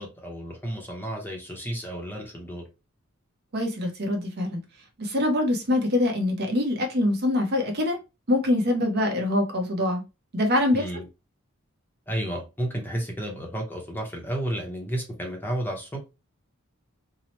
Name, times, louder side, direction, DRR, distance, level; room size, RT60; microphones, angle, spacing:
voice 1, 0.0-2.6 10.7-11.1 12.1-16.1, right 1 dB, 10° left, 0.6 m, -32 dB
voice 2, 3.5-4.6 5.0-8.0 8.3-10.0 10.3-10.9, left 1 dB, 50° right, 0.7 m, -24 dB
2.8 x 2.0 x 2.9 m
head